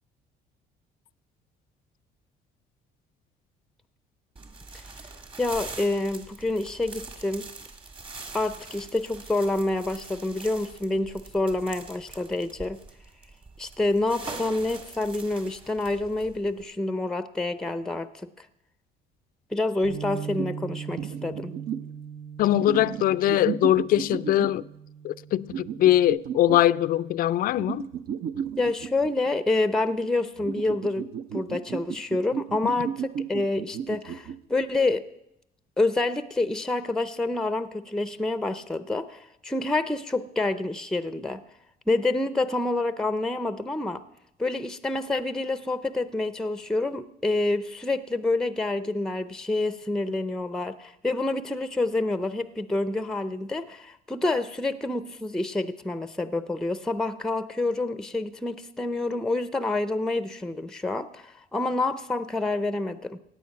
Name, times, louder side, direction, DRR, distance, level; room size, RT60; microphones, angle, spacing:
sound 1, 4.4-16.6, right 3 dB, 30° right, 1.8 m, -43 dB
voice 1, 5.4-7.5 8.3-12.8 13.6-18.5 19.5-21.5 28.6-31.1 31.3-35.0 35.8-41.4 41.9-44.0 44.4-63.2, left 2 dB, 5° left, 0.5 m, -28 dB
Bass guitar, 19.8-26.1, right 7 dB, 90° right, 2.4 m, -40 dB
sound 2, 20.4-20.5 21.0-21.9 22.5-24.7 25.5-26.6 27.6-29.3 30.4-34.4, right 8 dB, 65° right, 0.7 m, -34 dB
voice 2, 22.4-24.6 25.0-27.9, left 13 dB, 60° left, 0.4 m, -22 dB
17.0 x 9.0 x 5.8 m
cardioid pair, 110°, 17 cm